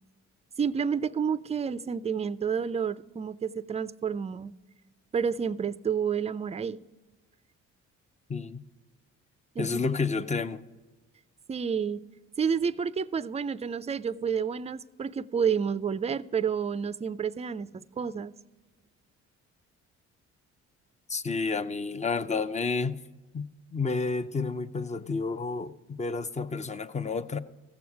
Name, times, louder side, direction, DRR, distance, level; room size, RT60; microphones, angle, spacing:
voice 1, 0.6-4.5 5.1-6.8 9.6-9.9 11.5-12.0 12.4-18.3, right 6 dB, 20° right, 0.4 m, -30 dB
voice 2, 8.3-8.6 9.6-10.6 21.1-23.0 23.3-23.4 23.7-27.4, left 4 dB, 25° left, 0.6 m, -30 dB
15.5 x 7.0 x 4.7 m
cardioid pair, 90°, 30 cm